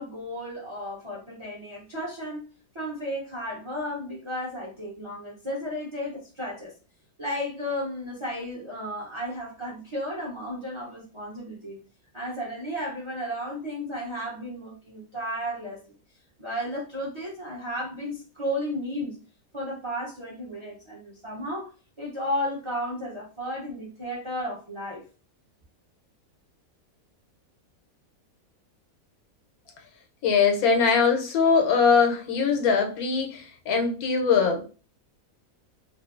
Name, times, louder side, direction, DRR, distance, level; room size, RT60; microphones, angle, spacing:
voice 1, 0.0-2.5 2.7-6.7 7.2-11.8 12.1-16.0 16.4-19.2 19.5-21.7 22.0-25.0, equal, 35° right, -3 dB, 0.4 m, -33 dB
voice 2, 30.2-34.7, left 5 dB, 90° left, 3 dB, 1.2 m, -22 dB
2.6 x 2.5 x 2.4 m, 0.35 s
omnidirectional pair, 1.5 m